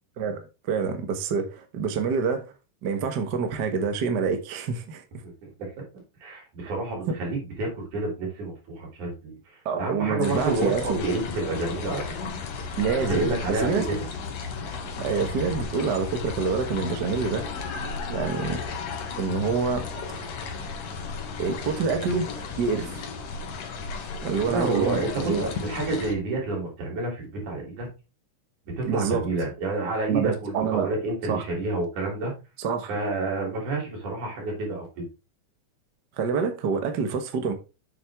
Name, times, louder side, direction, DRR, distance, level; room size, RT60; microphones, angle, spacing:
voice 1, 0.7-2.4 2.8-5.0 7.1-7.2 9.6-11.0 12.8-13.8 14.9-17.4 18.1-18.6 19.2-19.9 21.4-22.3 22.6-23.0 24.2-25.4 28.9-29.3 30.1-30.9 31.3-31.4 32.6-32.9 36.2-37.5, right 5 dB, 50° right, 1.3 m, -26 dB
voice 2, 6.2-9.3 9.8-12.0 13.1-14.1 22.7-22.9 24.4-27.9 28.7-32.3 32.9-35.0, right 2 dB, 80° right, 4.7 m, -29 dB
sound 1, 10.2-26.1, left 4 dB, 65° left, 2.4 m, -34 dB
7.8 x 6.8 x 3.6 m
omnidirectional pair, 3.5 m